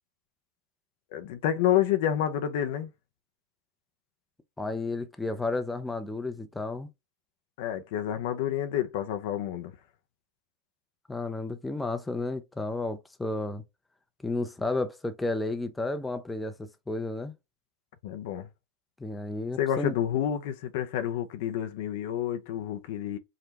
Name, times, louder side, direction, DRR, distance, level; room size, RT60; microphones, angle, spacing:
voice 1, 1.1-2.9 7.6-9.7 18.0-18.5 19.6-23.2, left 11 dB, 60° left, 0.6 m, -29 dB
voice 2, 4.6-6.9 11.1-13.6 14.2-17.3 19.0-20.0, left 2 dB, 10° left, 0.6 m, -32 dB
4.9 x 2.2 x 2.9 m
hypercardioid pair, 95°, 0 cm